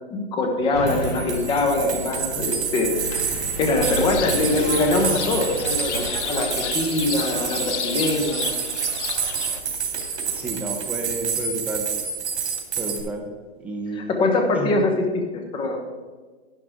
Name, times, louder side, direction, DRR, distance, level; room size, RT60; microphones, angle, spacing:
voice 1, 0.1-8.5 14.0-15.8, left 2 dB, 15° left, 3 dB, 1.1 m, -23 dB
sound 1, 0.6-0.7 0.9-13.0, right 7 dB, 75° right, 3.1 m, -28 dB
sound 2, 0.7-12.2 12.6-12.7, left 1 dB, 60° left, 2.5 m, -35 dB
sound 3, 3.8-9.6, left 8 dB, 85° left, 0.9 m, -32 dB
voice 2, 10.3-11.9 12.8-13.3 13.6-14.2 14.5-14.7, right 2 dB, 5° right, 1 dB, 0.7 m, -31 dB
11.5 x 10.0 x 3.6 m, 1.4 s
hypercardioid pair, 165°, 34 cm